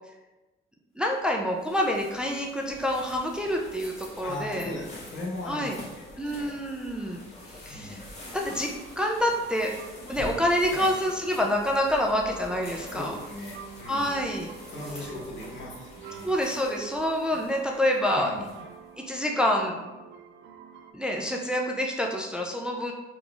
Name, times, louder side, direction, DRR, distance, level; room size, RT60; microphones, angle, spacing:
voice 1, 1.0-4.7 5.5-5.8 6.2-7.2 7.6-8.0 8.3-8.7 9.0-9.7 10.1-13.2 13.9-14.5 15.0-15.1 16.2-18.4 19.1-19.8 20.9-22.9, equal, 5° right, 0 dB, 0.4 m, -27 dB
sound 1, 1.1-18.9, left 1 dB, 35° left, 1.4 m, -46 dB
voice 2, 4.2-6.6 7.7-8.1 10.7-10.9 12.9-14.2 14.7-16.3 18.1-18.4, left 1 dB, 70° left, -3 dB, 1.1 m, -39 dB
sound 2, 8.4-20.9, right 7 dB, 70° right, 0.5 m, -47 dB
3.7 x 3.0 x 2.4 m, 1.1 s
cardioid pair, 90°, 20 cm